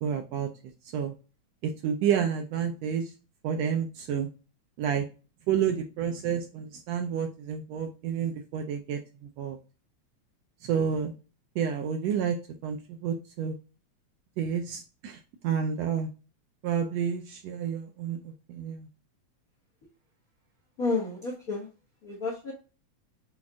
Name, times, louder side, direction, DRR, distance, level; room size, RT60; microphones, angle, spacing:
voice 1, 0.0-0.5 0.8-1.1 1.6-3.1 3.4-4.3 4.8-5.1 5.5-9.6 10.6-11.1 11.5-12.4 12.6-13.6 14.4-16.1 16.6-18.9, right 8 dB, 80° right, 4 dB, 1.6 m, -30 dB
voice 2, 20.8-21.7 22.0-22.5, left 3 dB, 75° left, -2 dB, 0.8 m, -30 dB
6.0 x 2.5 x 3.5 m, 0.34 s
omnidirectional pair, 3.3 m